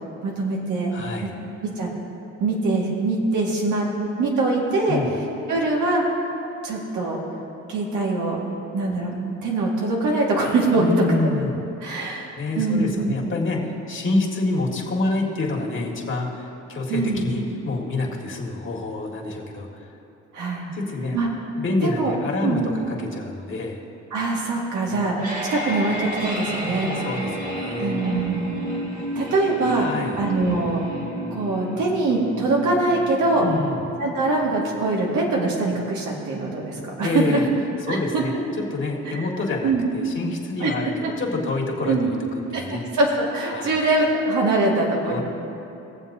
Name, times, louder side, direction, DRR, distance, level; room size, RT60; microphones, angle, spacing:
voice 1, 0.2-0.9 1.2-1.3 1.6-1.9 2.4-3.9 4.2-5.0 5.5-6.0 6.6-7.2 7.7-8.4 8.7-11.0 11.8-12.3 12.6-13.2 16.9-17.3 20.3-20.7 21.1-21.3 21.8-22.1 22.4-22.7 24.1-25.2 25.5-26.9 27.8-28.6 29.2-29.9 30.2-30.8 31.3-33.4 34.0-37.4 37.9-38.2 39.1-39.3 39.6-39.9 40.6-41.1 41.8-42.1 42.5-45.2, right 3 dB, 80° right, -2 dB, 1.9 m, -23 dB
voice 2, 0.9-1.3 4.9-5.1 8.5-8.7 10.8-11.5 11.9-12.0 12.3-19.8 20.7-21.2 21.6-23.8 26.8-28.0 29.8-30.2 33.4-33.8 37.0-37.4 37.9-38.3 38.7-42.2 42.5-42.8 43.5-43.8 45.1-45.2, left 3 dB, 40° left, -1 dB, 1.9 m, -27 dB
sound 1, 24.9-35.9, equal, 25° right, 2.1 m, -32 dB
21.0 x 7.3 x 2.7 m, 2.9 s
cardioid pair, 90°, 30 cm